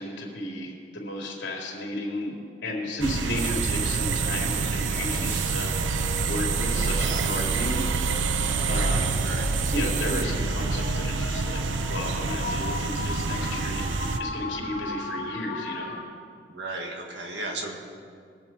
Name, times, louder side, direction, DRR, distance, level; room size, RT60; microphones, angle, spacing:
voice 1, 0.0-8.4 8.7-9.1 9.7-11.6 11.9-13.9 14.2-15.9, left 1 dB, 70° left, -1 dB, 3.3 m, -33 dB
sound 1, 2.8-16.0, left 2 dB, 55° left, 1.9 m, -39 dB
sound 2, 3.0-14.2, right 3 dB, 85° right, 0.7 m, -28 dB
sound 3, 3.4-10.2, right 10 dB, 40° right, 0.4 m, -31 dB
voice 2, 8.6-9.5 16.5-17.8, right 2 dB, 65° right, 1 dB, 1.9 m, -35 dB
22.0 x 7.8 x 4.6 m, 2.3 s
head